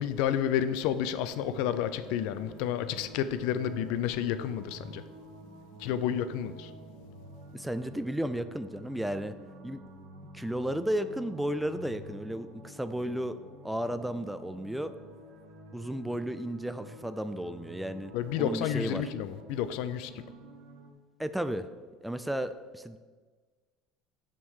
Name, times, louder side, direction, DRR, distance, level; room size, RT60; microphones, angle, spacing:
voice 1, 0.0-5.0 5.8-6.7 18.1-20.1, left 9 dB, 75° left, 12 dB, 0.4 m, -30 dB
sound 1, 1.2-20.9, right 1 dB, 75° right, 1.3 m, -49 dB
voice 2, 7.5-9.4 9.6-9.8 10.3-13.4 13.6-14.9 15.7-19.1 21.2-21.7 22.0-23.0, right 1 dB, 5° right, 11 dB, 0.4 m, -33 dB
7.2 x 3.7 x 6.3 m, 1.4 s
supercardioid pair, 110°, 0 cm